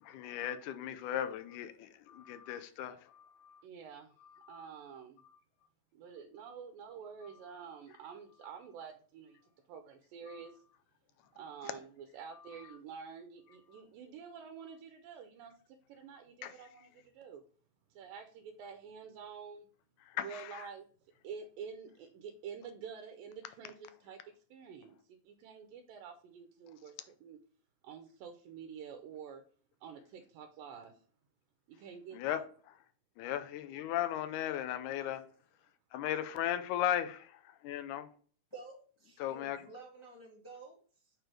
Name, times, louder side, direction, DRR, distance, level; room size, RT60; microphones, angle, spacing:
voice 1, 0.0-3.6 4.2-4.7 10.3-10.4 16.4-16.5 20.1-20.7 32.1-32.4 33.2-35.2 35.9-38.1 39.2-39.6, left 11 dB, 75° left, 2.1 m, -37 dB
voice 2, 3.6-4.1 4.5-5.2 5.9-9.4 9.7-10.6 11.4-17.4 17.9-19.7 20.2-20.9 21.2-24.2 24.5-26.9 27.2-27.4 27.8-29.4 29.8-31.0 31.7-32.4, right 6 dB, 90° right, 2.4 m, -48 dB
voice 3, 38.5-41.1, right 3 dB, 30° left, 0.5 m, -52 dB
6.5 x 3.3 x 6.0 m
omnidirectional pair, 3.9 m